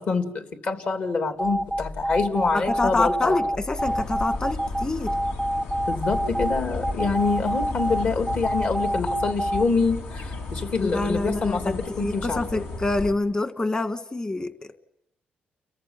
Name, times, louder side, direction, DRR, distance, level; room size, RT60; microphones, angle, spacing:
voice 1, 0.0-3.4 5.9-12.6, left 4 dB, 55° left, 5 dB, 3.1 m, -26 dB
sound 1, 1.4-7.4, left 2 dB, 90° left, 5.1 m, -40 dB
sound 2, 1.4-9.6, right 1 dB, 5° left, 0.8 m, -27 dB
voice 2, 2.5-5.2 10.8-14.8, left 2 dB, 25° left, 9 dB, 1.7 m, -26 dB
sound 3, 3.8-13.1, left 3 dB, 75° left, 3.2 m, -34 dB
30.0 x 14.5 x 9.2 m, 0.82 s
cardioid pair, 115°, 4 cm